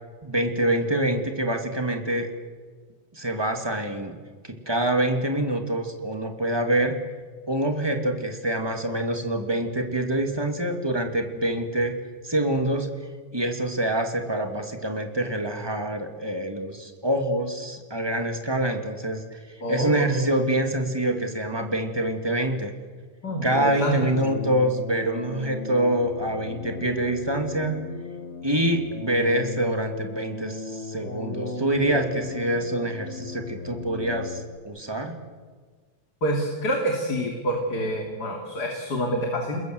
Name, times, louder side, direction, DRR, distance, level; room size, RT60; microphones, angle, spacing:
voice 1, 0.2-2.3 3.1-4.2 4.4-7.0 7.5-11.9 12.2-22.7 23.4-27.8 28.4-35.2, right 1 dB, 10° right, 4 dB, 2.1 m, -26 dB
voice 2, 19.6-20.1 23.2-24.0 36.2-39.6, equal, 35° left, 1 dB, 3.1 m, -27 dB
sound 1, 23.3-34.6, left 4 dB, 65° left, 0.6 m, -36 dB
29.5 x 21.0 x 7.9 m, 1.5 s
omnidirectional pair, 3.4 m